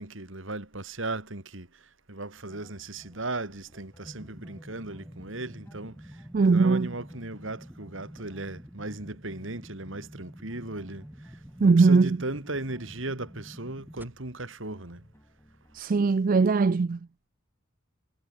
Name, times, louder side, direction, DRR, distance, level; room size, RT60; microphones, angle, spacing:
voice 1, 0.0-1.7 2.1-15.1, right 2 dB, 65° right, 3.0 m, -37 dB
sound 1, 2.3-15.8, equal, 10° left, 4.1 m, -57 dB
sound 2, 4.0-14.0, equal, 10° right, 1.4 m, -48 dB
voice 2, 6.3-6.9 11.6-12.2 15.7-17.0, right 4 dB, 40° right, 0.4 m, -20 dB
head